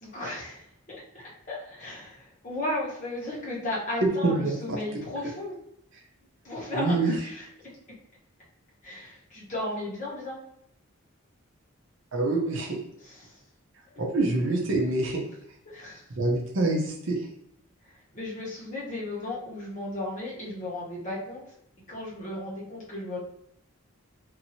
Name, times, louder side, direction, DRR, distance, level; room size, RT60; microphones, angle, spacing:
voice 1, 0.0-5.6 6.4-7.5 8.8-10.4 13.0-13.3 13.9-14.0 15.7-16.0 18.1-21.4 21.9-23.2, left 1 dB, 35° left, -6 dB, 1.1 m, -35 dB
voice 2, 4.2-4.8 6.7-7.1 12.1-12.8 14.0-15.2 16.2-17.2, right 2 dB, 60° right, 0 dB, 0.6 m, -26 dB
2.8 x 2.7 x 2.7 m, 0.74 s
head